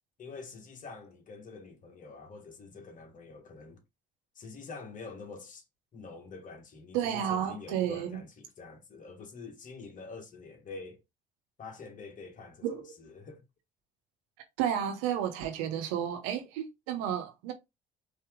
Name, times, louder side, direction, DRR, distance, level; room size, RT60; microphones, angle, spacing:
voice 1, 0.2-3.8 4.4-5.6 5.9-11.0 11.6-13.4, left 4 dB, 50° left, 1.6 m, -46 dB
voice 2, 6.9-8.2 12.6-12.9 14.6-17.5, right 9 dB, 90° right, 0.9 m, -32 dB
4.3 x 2.9 x 3.6 m
supercardioid pair, 65°, 17 cm